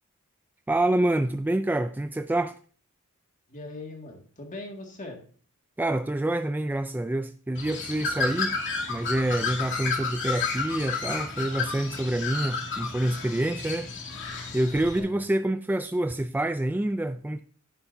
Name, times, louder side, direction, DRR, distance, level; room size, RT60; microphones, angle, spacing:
voice 1, 0.7-2.5 5.8-8.6 8.9-13.9 14.5-17.4, right 1 dB, 10° right, 9 dB, 0.3 m, -27 dB
voice 2, 3.5-5.2 14.9-15.3, left 2 dB, 35° left, 2 dB, 2.1 m, -40 dB
Bird, 7.5-15.0, left 4 dB, 55° left, 2.2 m, -31 dB
9.9 x 9.8 x 2.7 m, 0.43 s
head